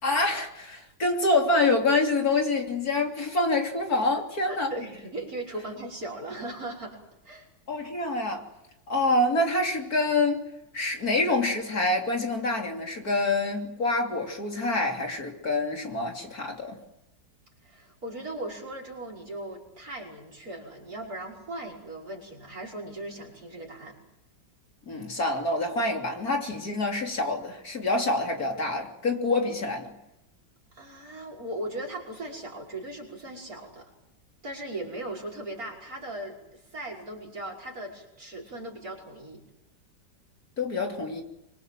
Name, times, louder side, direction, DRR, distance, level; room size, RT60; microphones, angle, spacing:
voice 1, 0.0-4.7 7.7-8.4 8.9-10.4 10.7-16.8 24.9-29.9 40.6-41.2, left 2 dB, 55° left, 3.7 m, -26 dB
voice 2, 4.5-7.0 7.2-7.5 17.6-24.0 30.7-33.9 34.4-39.4, right 1 dB, 50° right, 6.1 m, -38 dB
27.0 x 25.0 x 7.7 m
omnidirectional pair, 2.0 m